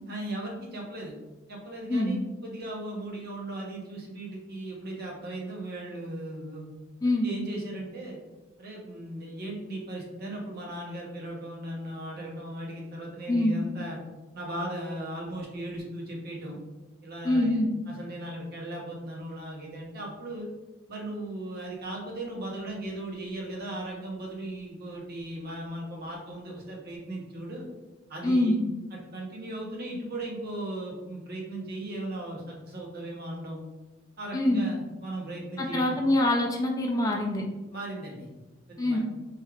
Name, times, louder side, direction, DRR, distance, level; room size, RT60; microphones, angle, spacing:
voice 1, 0.1-1.2 1.5-6.6 7.2-8.2 8.6-14.0 14.3-16.6 17.0-20.5 20.9-27.6 28.1-28.6 28.9-33.6 34.2-36.0 37.7-38.3 38.7-39.0, right 1 dB, 50° right, -2 dB, 0.8 m, -37 dB
voice 2, 17.2-17.7 28.2-28.6 34.3-34.6 35.6-37.4 38.8-39.0, left 1 dB, 15° left, 0 dB, 0.3 m, -24 dB
3.2 x 3.1 x 2.3 m, 1.1 s
head